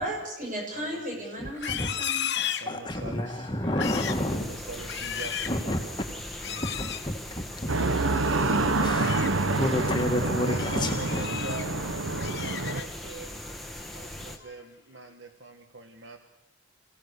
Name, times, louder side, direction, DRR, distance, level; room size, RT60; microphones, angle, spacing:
voice 1, 0.0-2.6, right 1 dB, 40° right, 0 dB, 7.5 m, -35 dB
voice 2, 0.7-1.8 2.6-3.5 4.3-5.3 5.6-6.0 6.5-6.7 7.8-8.6 8.9-9.3 9.6-9.9 10.2-11.8 12.1-13.5 13.9-16.2, right 2 dB, 65° right, 6 dB, 1.6 m, -43 dB
voice 3, 1.4-1.9 2.6-4.5 5.5-5.8 6.7-7.7 8.8-9.2 9.6-11.4, left 1 dB, 25° left, 3 dB, 1.7 m, -30 dB
Livestock farm animals working animals, 1.5-3.2 3.6-4.3 4.7-5.6 6.4-7.0 8.7-9.3 9.8-10.0 10.5-11.7 12.0-13.1 13.5-13.8 14.2-14.6, left 9 dB, 55° left, 1.3 m, -35 dB
sound 1, 3.8-14.4, left 1 dB, ahead, 1.6 m, -40 dB
sound 2, 7.7-12.8, right 2 dB, 90° right, 1.4 m, -27 dB
27.0 x 16.5 x 6.9 m, 0.88 s
head